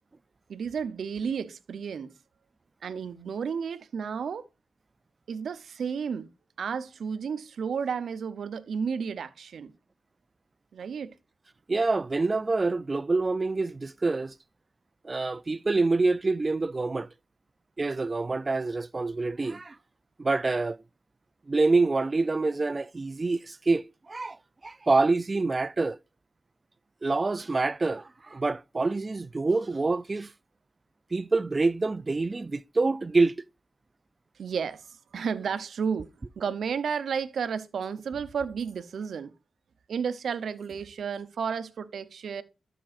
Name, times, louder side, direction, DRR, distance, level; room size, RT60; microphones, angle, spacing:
voice 1, 0.5-2.1 2.8-4.4 5.3-6.3 6.6-9.7 10.7-11.1 34.4-36.1 36.4-39.3 39.9-42.4, right 6 dB, 80° right, 0.7 m, -32 dB
voice 2, 11.7-14.3 15.0-17.1 17.8-19.8 20.2-20.8 21.5-24.4 24.6-26.0 27.0-30.3 31.1-33.4, right 3 dB, 35° right, 0.3 m, -26 dB
13.0 x 5.9 x 2.5 m
cardioid pair, 70°, 0 cm